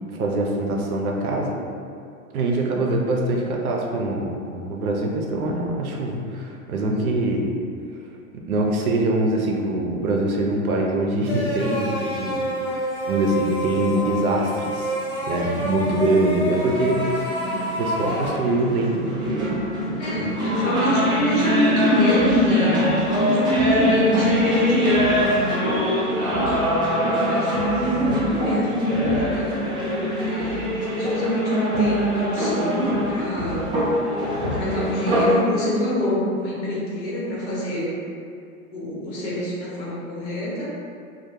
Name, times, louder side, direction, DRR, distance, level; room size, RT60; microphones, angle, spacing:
voice 1, 0.1-1.6 2.3-7.5 8.3-15.0 15.3-17.2 17.8-19.6 19.9-20.3, right 2 dB, 85° right, 0 dB, 0.5 m, -24 dB
sound 1, 11.2-18.3, equal, 15° left, 1.3 m, -28 dB
sound 2, 16.6-35.4, equal, 10° right, 0.5 m, -24 dB
voice 2, 20.0-25.2 25.6-29.6 30.1-33.7 34.4-37.9 38.7-40.7, equal, 60° left, -6 dB, 1.0 m, -25 dB
2.2 x 2.1 x 2.8 m, 2.4 s
hypercardioid pair, 95°, 42 cm